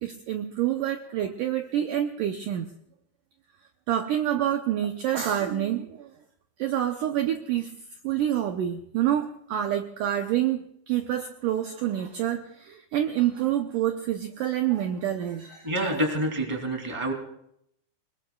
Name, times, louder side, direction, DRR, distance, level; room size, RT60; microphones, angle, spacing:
voice 1, 0.0-2.7 3.9-6.1 6.6-7.7 8.0-15.7, right 11 dB, 80° right, 5 dB, 1.9 m, -27 dB
voice 2, 15.6-17.1, right 1 dB, 10° right, 3 dB, 2.3 m, -27 dB
29.0 x 20.5 x 2.4 m, 0.72 s
omnidirectional pair, 4.8 m